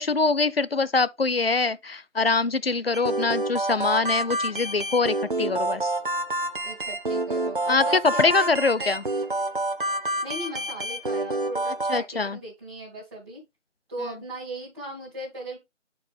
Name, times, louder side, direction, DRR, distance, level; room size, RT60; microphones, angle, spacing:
voice 1, 0.0-5.9 7.7-9.0 11.9-12.4, left 4 dB, 55° left, 0.4 m, -24 dB
sound 1, 2.9-12.0, right 2 dB, 45° right, 0.6 m, -28 dB
voice 2, 6.6-9.0 10.2-13.4 13.9-15.6, right 1 dB, 20° right, 1.8 m, -37 dB
8.8 x 4.4 x 3.3 m
figure-of-eight pair, 160°, 37 cm